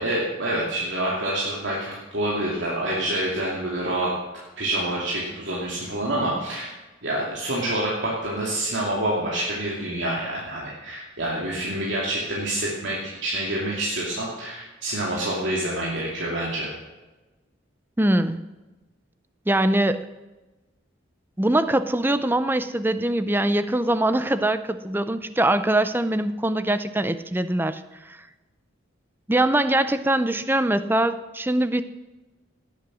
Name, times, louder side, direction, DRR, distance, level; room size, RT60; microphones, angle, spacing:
voice 1, 0.0-4.1 4.6-6.7 7.0-16.7, right 1 dB, 65° right, -5 dB, 2.7 m, -27 dB
voice 2, 18.0-18.4 19.5-20.0 21.4-28.2 29.3-31.8, right 1 dB, 10° right, 12 dB, 0.5 m, -22 dB
18.0 x 8.4 x 6.3 m, 1.1 s
head